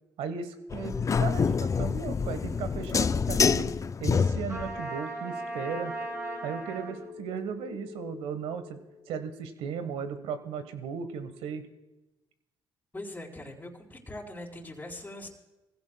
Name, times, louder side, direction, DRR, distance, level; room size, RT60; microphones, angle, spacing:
voice 1, 0.2-3.7 4.0-5.9 6.4-8.8 9.1-11.6, right 6 dB, 85° right, 10 dB, 1.3 m, -36 dB
sound 1, 0.7-4.8, left 5 dB, 35° left, 0.4 m, -27 dB
Trumpet, 4.5-7.0, right 2 dB, 30° right, 5.3 m, -37 dB
sound 2, 5.3-9.5, left 6 dB, 60° left, 3.1 m, -48 dB
voice 2, 12.9-15.3, left 1 dB, 15° left, -3 dB, 3.7 m, -41 dB
22.5 x 15.5 x 2.3 m, 1.0 s
supercardioid pair, 70°, 10 cm